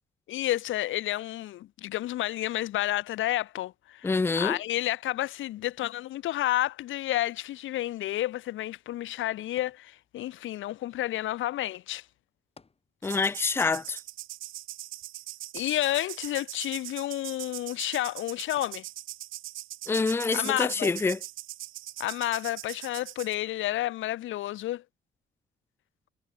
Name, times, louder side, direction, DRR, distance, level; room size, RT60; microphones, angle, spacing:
voice 1, 0.3-12.0 15.5-18.8 20.3-20.9 22.0-24.8, left 14 dB, 80° left, 1.0 m, -30 dB
voice 2, 4.0-4.6 13.0-14.0 19.9-21.2, left 4 dB, 10° left, 0.4 m, -26 dB
sound 1, 9.6-10.5 12.6-13.4 13.7-13.8 15.6-16.4 18.6-19.3 20.0-20.1, left 4 dB, 30° left, 4.5 m, -58 dB
sound 2, 13.0-23.4, right 15 dB, 85° right, 1.2 m, -41 dB
cardioid pair, 90°, 20 cm